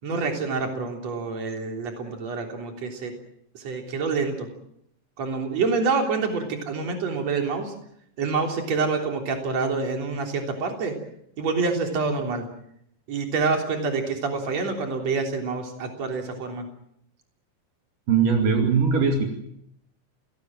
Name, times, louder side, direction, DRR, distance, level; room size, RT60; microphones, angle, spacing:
voice 1, 0.0-3.1 3.5-4.5 5.2-7.7 8.2-11.0 11.4-12.5 13.1-16.7, right 4 dB, 50° right, 3 dB, 4.5 m, -27 dB
voice 2, 18.1-19.3, right 5 dB, 70° right, 3 dB, 4.0 m, -20 dB
28.5 x 18.5 x 7.6 m, 0.74 s
omnidirectional pair, 3.9 m